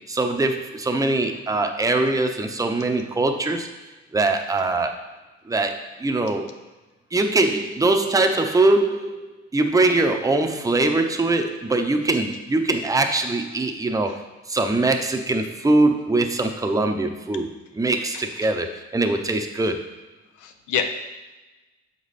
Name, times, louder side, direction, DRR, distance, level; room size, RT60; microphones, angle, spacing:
voice 1, 0.1-3.7 4.1-5.2 5.5-6.5 7.1-9.3 9.5-19.9, right 2 dB, 10° right, 4 dB, 0.7 m, -22 dB
voice 2, 18.1-18.5 20.4-20.9, left 7 dB, 85° left, 7 dB, 0.8 m, -28 dB
6.8 x 5.1 x 4.1 m, 1.1 s
cardioid pair, 90°, 30 cm